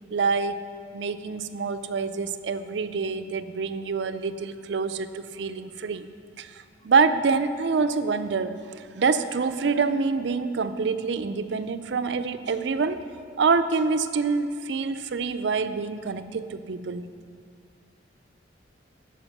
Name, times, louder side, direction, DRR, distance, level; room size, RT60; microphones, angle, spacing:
voice 1, 0.1-0.6 0.9-6.1 6.4-13.0 13.4-17.1, right 4 dB, 65° right, 11 dB, 0.4 m, -26 dB
14.0 x 5.0 x 5.9 m, 2.2 s
head